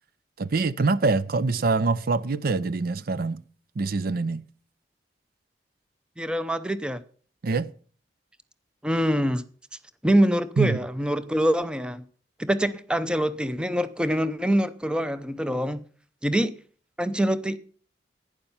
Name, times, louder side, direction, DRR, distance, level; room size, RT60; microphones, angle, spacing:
voice 1, 0.4-3.4 3.8-4.4 7.4-7.7 10.6-10.8, right 3 dB, 55° right, 0.5 m, -24 dB
voice 2, 6.2-7.0 8.8-9.4 10.0-12.0 12.4-15.8 16.2-16.5 17.0-17.6, equal, 5° right, 0.6 m, -24 dB
11.5 x 9.7 x 5.6 m
head